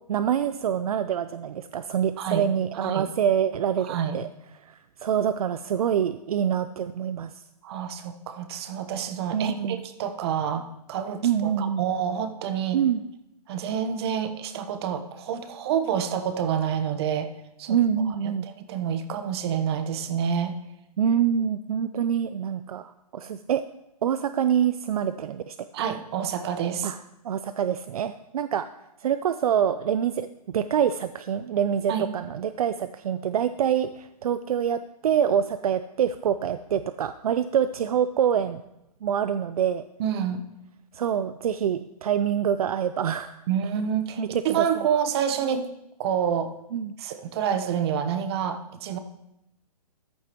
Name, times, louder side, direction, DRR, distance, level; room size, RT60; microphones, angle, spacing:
voice 1, 0.1-4.3 4.7-7.3 9.3-9.8 11.2-11.8 12.7-13.0 17.7-18.4 21.0-23.6 24.0-25.6 26.8-27.0 27.2-28.7 29.0-30.3 30.5-38.6 39.0-39.8 40.9-43.3 44.2-44.8 46.7-46.9, right 9 dB, 65° right, 12 dB, 0.5 m, -25 dB
voice 2, 2.2-2.5 2.8-3.1 3.8-4.2 7.6-12.8 13.5-17.3 17.6-17.8 18.1-20.6 25.7-26.9 31.9-32.1 40.0-40.4 43.5-45.7 46.0-46.5 47.0-49.0, right 8 dB, 40° right, 9 dB, 1.0 m, -28 dB
14.0 x 11.0 x 3.0 m, 0.87 s
hypercardioid pair, 140°, 20 cm